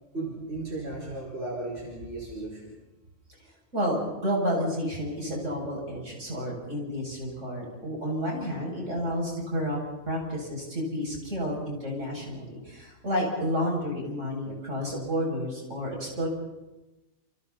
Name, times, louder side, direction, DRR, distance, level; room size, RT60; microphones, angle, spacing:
voice 1, 0.1-2.7, right 2 dB, 60° right, -3 dB, 5.5 m, -35 dB
voice 2, 3.7-9.8 10.1-16.3, equal, 85° right, -2 dB, 7.7 m, -30 dB
29.0 x 29.0 x 4.3 m, 1.0 s
omnidirectional pair, 1.2 m